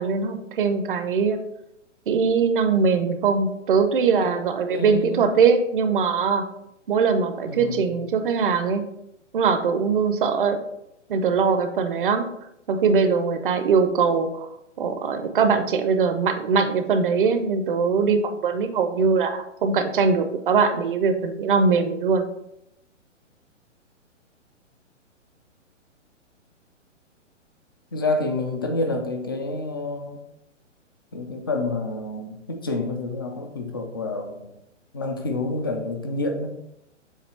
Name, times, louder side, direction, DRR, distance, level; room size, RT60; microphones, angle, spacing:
voice 1, 0.0-1.4 2.1-6.4 6.9-8.8 9.3-10.6 11.1-12.3 12.7-14.5 14.8-22.2, right 5 dB, 45° right, 8 dB, 0.7 m, -21 dB
voice 2, 4.7-5.3 7.5-7.9 27.9-30.2 31.1-34.5 34.9-36.5, left 2 dB, 20° left, 4 dB, 0.3 m, -28 dB
7.4 x 3.0 x 4.2 m, 0.83 s
figure-of-eight pair, 125°, 37 cm